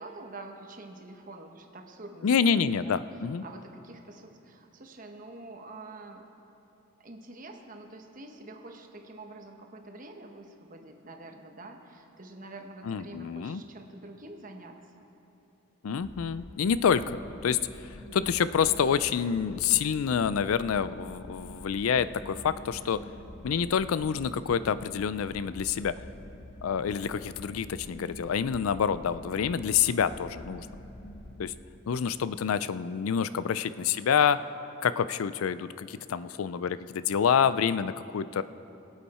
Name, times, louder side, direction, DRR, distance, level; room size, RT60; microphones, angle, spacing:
voice 1, 0.0-2.3 2.6-6.3 7.0-15.0, right 2 dB, 40° right, 3 dB, 1.1 m, -46 dB
voice 2, 2.2-3.4 12.9-13.6 15.8-17.6 18.1-23.0 23.4-25.9 26.6-30.7 31.4-31.5 31.9-34.4 34.8-38.4, left 7 dB, 85° left, 15 dB, 0.4 m, -27 dB
sound 1, 16.0-31.5, left 1 dB, 55° left, 1.1 m, -46 dB
23.0 x 8.4 x 4.3 m, 2.9 s
head